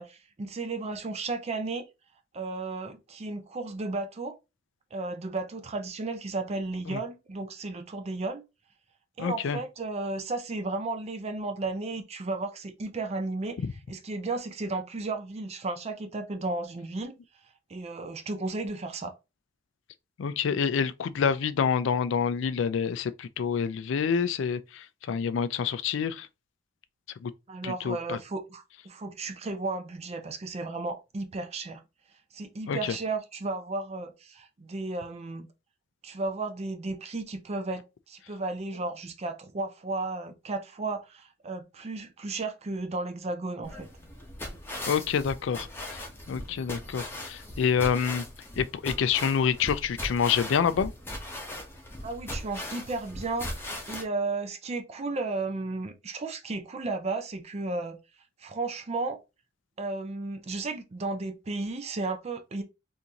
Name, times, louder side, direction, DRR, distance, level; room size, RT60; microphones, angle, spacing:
voice 1, 0.0-1.8 2.3-4.4 4.9-8.4 9.2-13.6 13.9-17.1 17.7-19.1 27.5-31.8 32.3-35.5 36.0-43.9 52.0-58.0 58.4-59.2 59.8-62.6, right 3 dB, 35° right, 0.4 m, -34 dB
voice 2, 9.2-9.6 20.2-26.3 27.2-27.3 27.6-28.2 32.7-33.0 44.9-48.3 48.6-50.9, left 7 dB, 70° left, 0.3 m, -27 dB
sound 1, 43.6-54.0, left 1 dB, 10° left, 0.8 m, -39 dB
3.7 x 2.6 x 2.8 m
head